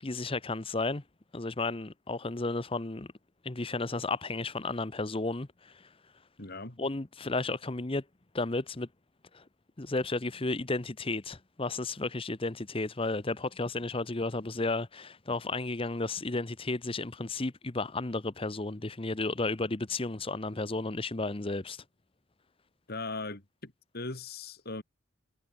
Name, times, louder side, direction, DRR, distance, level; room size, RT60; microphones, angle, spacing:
voice 1, 0.0-1.0 1.3-3.1 3.4-5.8 6.8-8.0 8.3-8.9 9.3-9.4 9.8-21.8, left 3 dB, 25° left, 0.9 m, -33 dB
voice 2, 6.4-6.8 22.9-24.8, left 3 dB, 50° left, 2.9 m, -39 dB
head